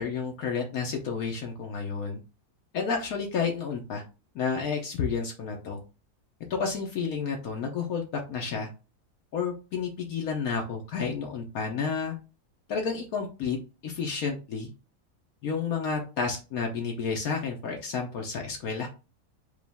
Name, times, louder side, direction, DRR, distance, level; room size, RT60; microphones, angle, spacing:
voice 1, 0.0-2.2 2.7-4.0 4.3-5.8 6.5-8.7 9.3-12.1 12.7-13.6 13.8-14.7 15.4-18.9, left 5 dB, 70° left, 1 dB, 1.2 m, -31 dB
5.1 x 2.4 x 3.4 m, 0.32 s
omnidirectional pair, 1.6 m